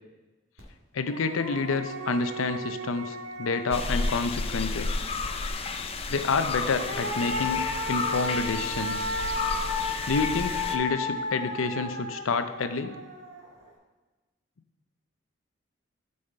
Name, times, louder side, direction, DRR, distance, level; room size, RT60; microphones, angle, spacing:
sound 1, 0.6-0.7 1.0-4.7 6.3-13.6, left 2 dB, 80° right, 2.1 m, -34 dB
voice 1, 0.9-5.0 6.1-9.1 10.1-13.0, left 4 dB, 80° left, 10 dB, 0.6 m, -29 dB
sound 2, 3.7-10.8, left 3 dB, 30° left, 0.4 m, -32 dB
8.5 x 5.5 x 4.4 m, 1.2 s
head